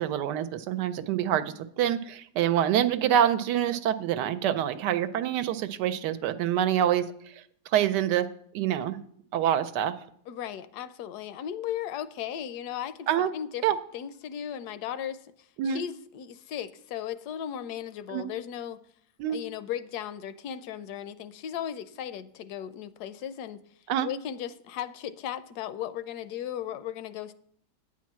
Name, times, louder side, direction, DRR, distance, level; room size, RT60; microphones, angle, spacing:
voice 1, 0.0-9.0 9.3-10.0 13.1-13.3 13.6-13.8 15.6-15.8 18.1-18.3 19.2-19.4 23.9-24.1, right 10 dB, 85° right, 1.2 m, -26 dB
voice 2, 10.3-13.6 13.9-18.8 19.3-23.6 24.0-27.3, left 10 dB, 75° left, 1.1 m, -36 dB
9.5 x 4.5 x 7.3 m
omnidirectional pair, 1.8 m